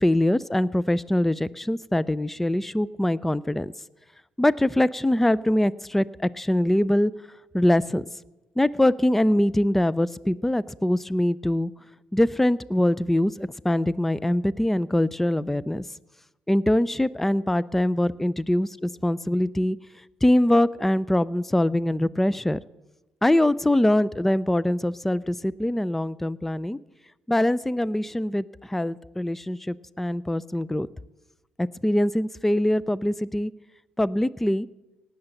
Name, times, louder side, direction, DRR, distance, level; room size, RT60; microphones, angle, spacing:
voice 1, 0.0-3.7 4.4-6.1 6.3-7.1 7.5-8.0 8.6-11.7 12.1-15.8 16.5-19.8 20.2-22.6 23.2-26.8 27.3-30.9 31.6-33.5 34.0-34.7, left 1 dB, 5° left, 20 dB, 0.4 m, -23 dB
18.0 x 7.0 x 7.7 m, 1.1 s
supercardioid pair, 70°, 3 cm